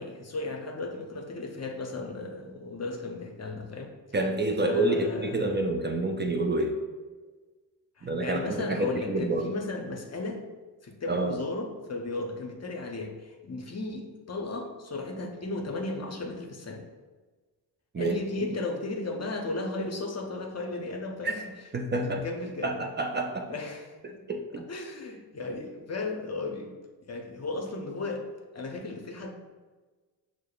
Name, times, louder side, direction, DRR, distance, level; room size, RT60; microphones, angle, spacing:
voice 1, 0.0-3.9 4.6-5.5 8.0-10.4 10.8-16.8 17.9-21.4 22.0-22.8 23.5-24.2 24.7-26.7 27.0-28.2 28.5-29.3, left 2 dB, 35° left, 2 dB, 0.7 m, -35 dB
voice 2, 4.1-6.8 8.0-9.6 11.1-11.4 17.9-18.2 21.2-21.3 21.7-22.2 22.6-23.5 24.0-24.7, right 2 dB, 25° right, 4 dB, 0.5 m, -28 dB
6.3 x 2.1 x 2.4 m, 1.3 s
hypercardioid pair, 40°, 47 cm